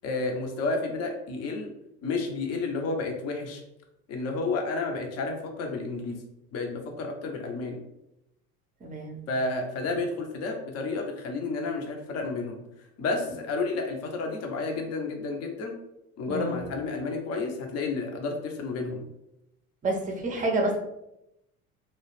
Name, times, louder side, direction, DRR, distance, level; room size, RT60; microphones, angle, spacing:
voice 1, 0.0-1.7 2.0-3.6 4.1-6.2 6.5-7.8 9.3-12.6 13.0-15.7 16.2-19.1, left 3 dB, 35° left, 3 dB, 0.6 m, -31 dB
voice 2, 8.8-9.2 16.3-16.6 19.8-20.8, right 2 dB, 20° right, 1 dB, 0.5 m, -28 dB
2.3 x 2.0 x 3.0 m, 0.86 s
hypercardioid pair, 75°, 45 cm